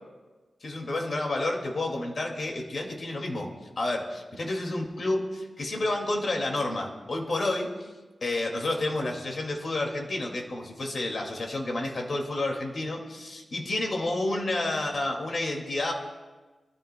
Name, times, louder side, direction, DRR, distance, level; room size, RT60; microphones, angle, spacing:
voice 1, 0.6-7.9 8.2-15.9, left 2 dB, 60° left, 1 dB, 2.2 m, -30 dB
27.0 x 13.5 x 2.3 m, 1.3 s
wide cardioid pair, 85°, 0 cm